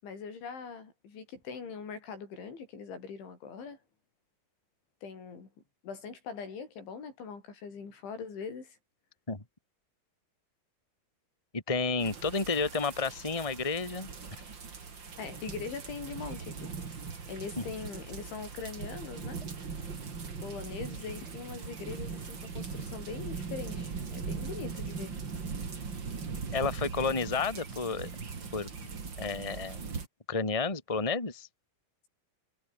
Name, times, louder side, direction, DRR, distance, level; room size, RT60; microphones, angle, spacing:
voice 1, 0.0-3.8 5.0-5.5 5.8-8.8 15.2-16.9 17.3-19.4 20.4-25.1, left 5 dB, 80° left, 8.7 m, -42 dB
voice 2, 11.5-14.1 17.6-17.7 26.5-28.1 28.5-28.7 29.2-29.8 30.3-31.5, left 4 dB, 10° left, 2.6 m, -31 dB
sound 1, 12.0-30.1, right 5 dB, 30° right, 2.7 m, -40 dB
omnidirectional pair, 5.3 m